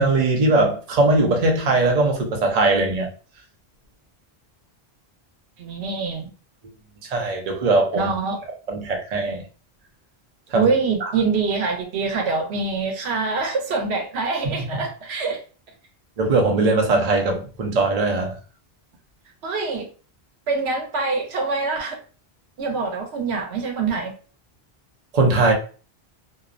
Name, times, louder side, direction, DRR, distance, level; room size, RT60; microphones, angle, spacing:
voice 1, 0.0-3.1 7.1-8.1 8.7-9.4 10.5-10.7 11.0-11.1 16.2-18.3 25.1-25.5, right 2 dB, 45° right, 0.6 m, -20 dB
voice 2, 5.6-6.3 7.9-8.4 10.5-15.4 19.4-19.8 20.5-22.0 22.6-24.1, right 4 dB, 85° right, 0.9 m, -24 dB
2.7 x 2.0 x 2.4 m
omnidirectional pair, 1.1 m